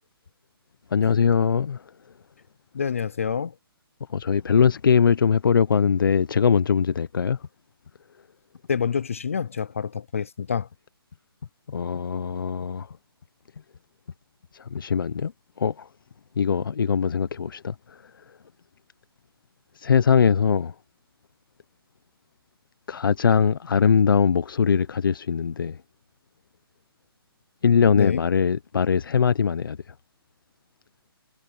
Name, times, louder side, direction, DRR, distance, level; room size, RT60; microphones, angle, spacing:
voice 1, 0.9-1.8 4.1-7.4 11.7-12.9 14.7-15.3 15.6-15.9 16.4-17.7 19.8-20.7 22.9-25.8 27.6-29.8, left 6 dB, 60° left, 0.8 m, -21 dB
voice 2, 2.7-3.5 8.7-10.7 28.0-28.2, left 7 dB, 35° left, 0.4 m, -27 dB
hypercardioid pair, 180°, 13 cm